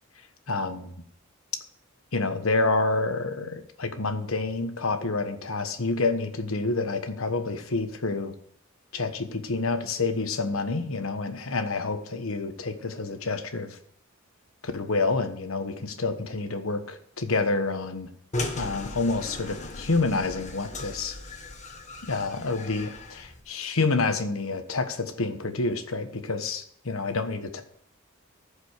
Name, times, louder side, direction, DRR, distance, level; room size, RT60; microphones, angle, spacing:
voice 1, 0.5-1.0 2.1-8.3 8.9-13.8 14.6-18.1 18.5-21.1 22.1-27.6, left 3 dB, 75° left, 8 dB, 1.2 m, -28 dB
sound 1, 18.3-23.4, left 2 dB, 35° left, 1.4 m, -37 dB
14.5 x 5.2 x 6.5 m, 0.65 s
head